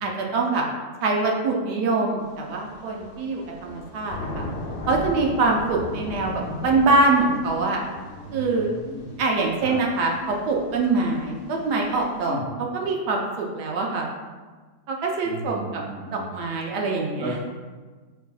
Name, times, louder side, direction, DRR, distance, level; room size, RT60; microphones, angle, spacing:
voice 1, 0.0-0.7 1.0-4.5 4.9-7.8 8.3-8.7 9.2-12.4 12.7-14.1 14.9-15.8 16.1-17.3, right 3 dB, 90° right, 0 dB, 1.2 m, -24 dB
Thunder / Rain, 2.2-12.2, left 1 dB, 55° left, 0.8 m, -38 dB
voice 2, 7.9-9.1 9.6-9.8 12.2-12.5 15.2-16.3 17.2-17.4, right 1 dB, 50° right, -5 dB, 1.2 m, -35 dB
4.7 x 3.2 x 2.2 m, 1.4 s
omnidirectional pair, 1.7 m